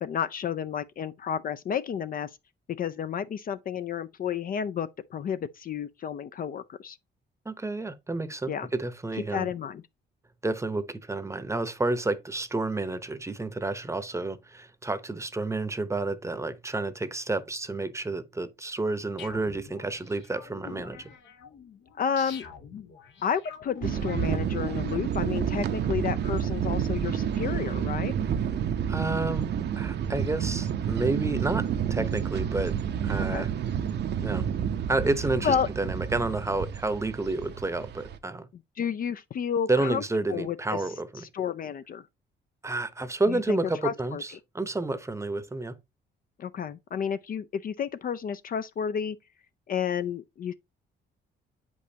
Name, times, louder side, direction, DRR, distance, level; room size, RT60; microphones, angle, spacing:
voice 1, 0.0-2.3 2.7-7.0 8.5-8.7 9.3-9.8 22.0-22.5 23.2-28.1 33.3-33.5 35.4-35.7 38.8-40.0 40.3-40.8 41.3-42.0 43.3-44.2 46.4-49.2 49.7-50.5, left 7 dB, 45° left, 0.4 m, -31 dB
voice 2, 7.4-9.5 10.4-21.1 28.9-29.5 29.8-32.7 33.0-33.5 34.2-34.5 34.9-38.5 39.7-41.2 42.6-45.8, right 2 dB, 15° right, 0.8 m, -30 dB
sound 1, 19.2-25.0, left 7 dB, 70° left, 1.0 m, -46 dB
sound 2, 23.8-38.2, right 8 dB, 60° right, 0.7 m, -29 dB
7.8 x 5.3 x 2.8 m
cardioid pair, 90°, 20 cm